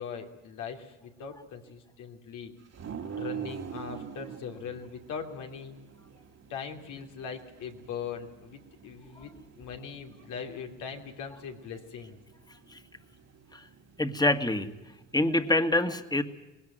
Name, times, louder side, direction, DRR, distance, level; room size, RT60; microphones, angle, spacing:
voice 1, 0.0-2.5 3.1-5.8 6.5-12.2, left 6 dB, 85° left, 4 dB, 3.0 m, -40 dB
sound 1, 2.7-15.5, right 8 dB, 60° right, 2.2 m, -46 dB
voice 2, 14.0-14.7 15.1-16.2, left 1 dB, 15° left, 9 dB, 1.8 m, -26 dB
20.5 x 18.0 x 9.3 m, 1.1 s
cardioid pair, 90°, 30 cm